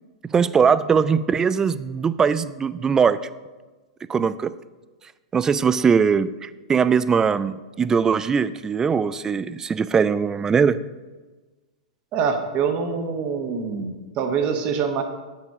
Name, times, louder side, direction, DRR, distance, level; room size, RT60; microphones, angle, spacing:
voice 1, 0.2-3.3 4.1-4.5 5.3-10.8, right 6 dB, 15° right, 15 dB, 0.3 m, -21 dB
voice 2, 12.1-15.0, right 6 dB, 35° right, 5 dB, 1.1 m, -25 dB
8.3 x 6.6 x 4.7 m, 1.2 s
figure-of-eight pair, 100°, 3 cm